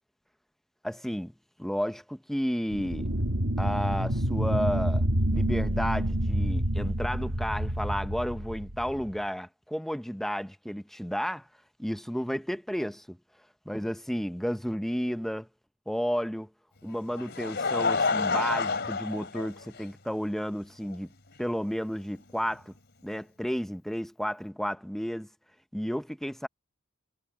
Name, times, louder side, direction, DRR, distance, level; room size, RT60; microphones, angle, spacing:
voice 1, 0.8-1.3 1.6-3.1 3.6-5.0 5.3-11.5 11.8-13.2 13.7-15.5 15.9-16.5 16.8-21.1 21.4-22.7 23.0-25.3 25.7-26.5, equal, ahead, 0.7 m, -32 dB
sound 1, 2.7-9.2, right 1 dB, 80° right, 2.2 m, -28 dB
Laughter, 16.9-20.1 20.9-21.0 22.5-22.6, left 4 dB, 55° left, 3.2 m, -29 dB
head